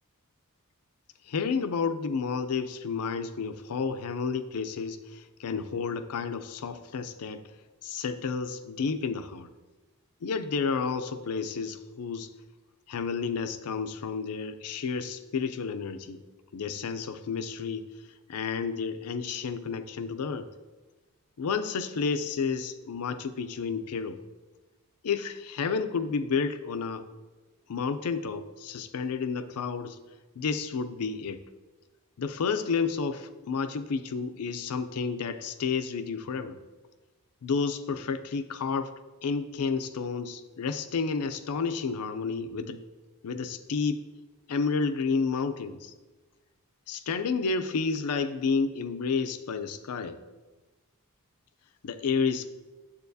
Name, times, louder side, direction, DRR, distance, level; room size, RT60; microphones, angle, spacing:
voice 1, 1.3-7.4 7.8-9.5 10.2-12.3 12.9-16.2 16.5-17.9 18.3-20.5 21.4-24.2 25.0-27.1 27.7-30.0 30.4-31.4 32.2-36.6 37.4-38.9 39.2-42.8 43.2-44.0 44.5-45.9 46.9-50.2 51.8-52.5, left 5 dB, 90° left, 10 dB, 0.5 m, -31 dB
7.1 x 6.8 x 2.7 m, 1.2 s
head